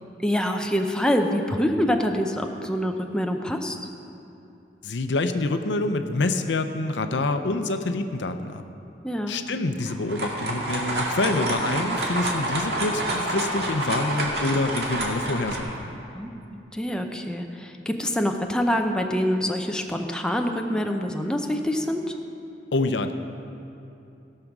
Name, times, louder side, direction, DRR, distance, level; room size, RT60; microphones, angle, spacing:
voice 1, 0.2-3.9 9.0-9.3 16.1-16.4 16.7-22.2, equal, 5° left, 3 dB, 0.6 m, -25 dB
voice 2, 4.8-8.6 9.3-16.0 22.7-23.1, left 2 dB, 85° left, 8 dB, 0.7 m, -26 dB
sound 1, 9.8-15.6, right 1 dB, 65° right, 2.0 m, -28 dB
16.5 x 6.6 x 6.0 m, 2.8 s
head